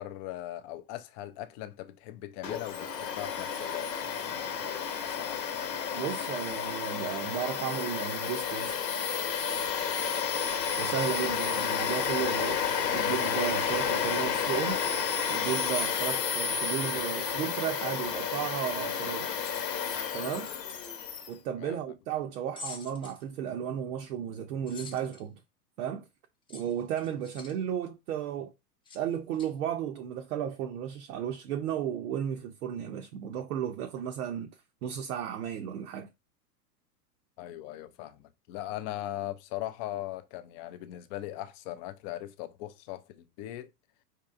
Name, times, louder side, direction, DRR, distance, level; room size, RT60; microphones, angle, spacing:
voice 1, 0.0-6.1 10.1-10.4 21.6-21.8 37.4-38.2 38.5-43.7, left 14 dB, 30° left, 0.4 m, -40 dB
Domestic sounds home sounds, 2.4-21.3, left 7 dB, 90° left, 1.0 m, -31 dB
voice 2, 5.9-8.8 10.8-12.6 12.9-14.8 15.3-19.3 20.1-20.5 21.3-25.4 25.8-26.1 26.5-28.5 28.9-34.5 34.8-36.1, right 9 dB, 65° right, 0.7 m, -34 dB
sound 1, 19.4-20.9 22.6-23.2 24.7-25.2 26.5-27.6 28.9-29.0 29.3-29.5, left 3 dB, 10° left, 0.8 m, -46 dB
4.6 x 2.8 x 2.4 m
hypercardioid pair, 105°, 48 cm